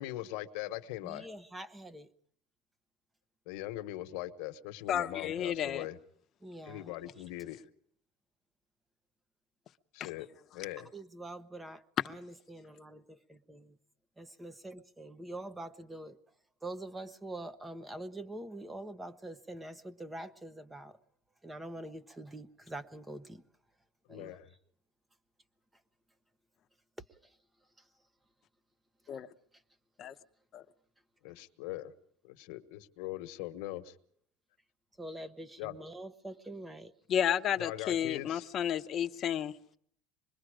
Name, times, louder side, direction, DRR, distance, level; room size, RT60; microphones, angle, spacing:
voice 1, 0.0-1.3 3.5-6.0 6.6-7.6 9.9-10.3 10.5-10.9 24.1-24.5 31.2-31.9 32.2-33.9 35.6-35.7 37.6-38.5, left 15 dB, 70° left, 1.3 m, -41 dB
voice 2, 1.0-2.1 6.4-6.9 10.9-13.8 14.2-16.2 16.6-21.0 21.4-23.4 24.1-24.4 27.2-27.3 35.0-36.9, right 1 dB, 10° right, 0.9 m, -45 dB
voice 3, 4.9-5.9 29.1-29.3 30.0-30.1 30.5-30.6 37.1-39.5, left 9 dB, 40° left, 0.9 m, -32 dB
25.5 x 21.5 x 5.0 m
supercardioid pair, 125°, 0 cm